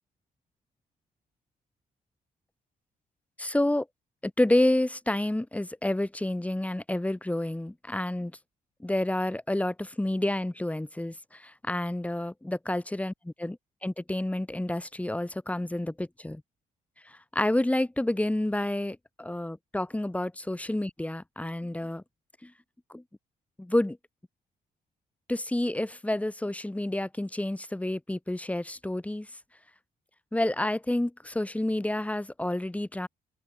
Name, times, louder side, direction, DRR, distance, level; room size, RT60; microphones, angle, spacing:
voice 1, 3.4-3.8 4.2-8.3 8.8-16.4 17.3-22.0 22.9-23.0 23.6-24.0 25.3-29.3 30.3-33.1, left 1 dB, 10° left, 3.4 m, -29 dB
open air
cardioid pair, 90°, 15 cm